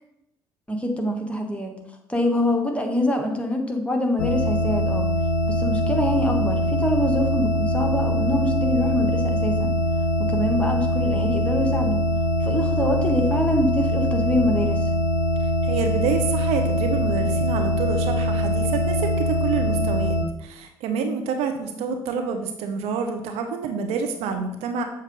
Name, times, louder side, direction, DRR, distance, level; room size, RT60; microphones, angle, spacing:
voice 1, 0.7-1.8 2.1-5.1 5.4-9.7 10.2-12.0 12.4-14.9, left 1 dB, 10° left, 2 dB, 1.3 m, -25 dB
sound 1, 4.2-20.2, equal, 85° left, 0.5 m, -23 dB
voice 2, 15.6-24.8, right 5 dB, 65° right, 5 dB, 0.7 m, -28 dB
7.1 x 2.6 x 5.2 m, 0.82 s
figure-of-eight pair, 50°, 11 cm